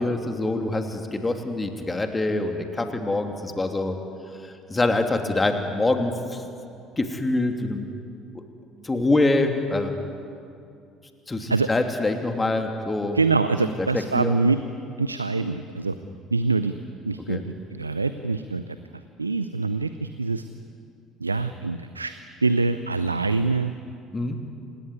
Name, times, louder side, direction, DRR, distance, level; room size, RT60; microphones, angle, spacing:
voice 1, 0.0-4.0 4.4-6.4 7.0-7.9 8.3-8.4 8.8-9.9 11.3-13.2 13.6-14.4 16.0-16.2 17.3-17.4 24.1-24.4, left 2 dB, 20° left, 5 dB, 3.0 m, -25 dB
voice 2, 13.1-14.6 15.0-15.9 16.3-16.7 17.0-17.4 17.7-18.6 19.2-20.4 21.2-22.1 22.4-23.7, right 3 dB, 90° right, 11 dB, 0.6 m, -24 dB
27.5 x 18.0 x 9.6 m, 2.5 s
figure-of-eight pair, 55°, 0 cm